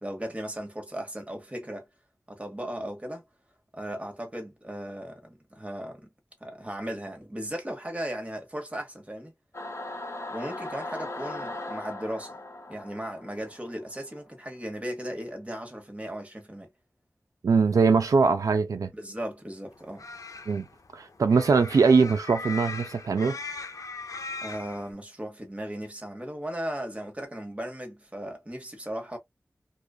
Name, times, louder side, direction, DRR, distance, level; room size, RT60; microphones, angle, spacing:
voice 1, 0.0-1.9 2.3-3.2 3.7-6.1 6.4-9.3 10.3-12.3 12.7-16.7 18.9-20.0 24.4-29.2, right 1 dB, 25° right, 1.1 m, -36 dB
Singing / Musical instrument, 9.5-14.2, left 2 dB, 50° left, 0.8 m, -38 dB
voice 2, 17.4-18.9 20.5-20.7 20.9-23.4, right 5 dB, 85° right, 0.4 m, -22 dB
sound 1, 19.7-24.9, left 4 dB, 80° left, 0.5 m, -39 dB
2.4 x 2.4 x 2.3 m
wide cardioid pair, 50°, 6 cm